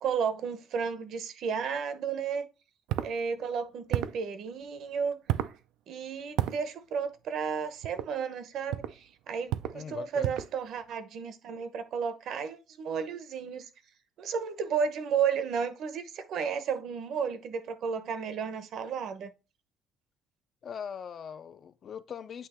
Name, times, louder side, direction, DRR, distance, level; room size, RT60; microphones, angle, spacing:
voice 1, 0.0-2.5 3.0-5.2 5.9-13.7 14.2-19.3, right 6 dB, 55° right, 0.9 m, -33 dB
sound 1, 2.9-3.1 3.9-4.2 5.3-5.6 6.4-6.6 7.8-8.1 8.7-9.0 9.5-9.8 10.2-10.6, right 13 dB, 90° right, 0.5 m, -31 dB
voice 2, 9.7-10.3 20.6-22.5, left 7 dB, 40° left, 0.4 m, -41 dB
8.4 x 2.9 x 4.3 m
cardioid pair, 165°, 0 cm